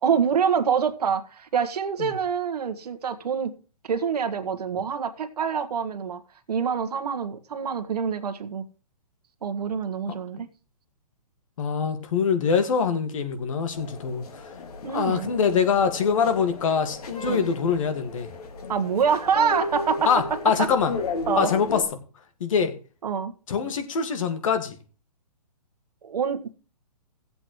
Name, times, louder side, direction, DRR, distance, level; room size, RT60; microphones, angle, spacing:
voice 1, 0.0-3.5 3.8-6.2 6.5-8.7 9.4-10.5 14.8-15.3 17.2-17.5 18.7-20.1 21.3-21.5 23.0-23.3 26.0-26.5, right 6 dB, 75° right, 1.4 m, -26 dB
voice 2, 11.6-14.5 14.9-18.3 20.1-20.9 21.4-21.8 22.4-22.7 23.5-24.8, left 6 dB, 55° left, 1.9 m, -24 dB
sound 1, 13.7-21.8, left 3 dB, 70° left, 2.2 m, -34 dB
17.5 x 7.9 x 3.1 m
hypercardioid pair, 170°, 20 cm